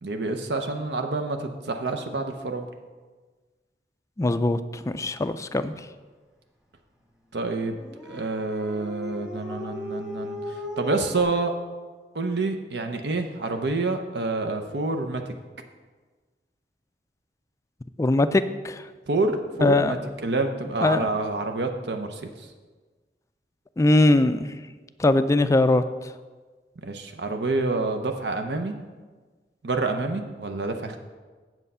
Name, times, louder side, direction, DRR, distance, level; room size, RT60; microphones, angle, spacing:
voice 1, 0.0-2.7 7.3-7.8 8.0-11.5 12.1-15.2 19.1-20.0 20.2-22.5 26.8-28.7 29.6-31.0, right 3 dB, 70° right, 5 dB, 0.7 m, -28 dB
voice 2, 4.2-4.6 4.9-5.7 18.0-18.8 19.6-19.9 20.8-21.1 23.8-24.5 25.0-25.8, left 2 dB, 15° left, 11 dB, 0.3 m, -21 dB
Dog, 7.8-11.2, equal, 5° right, 1.4 m, -36 dB
8.1 x 7.4 x 5.5 m, 1.4 s
head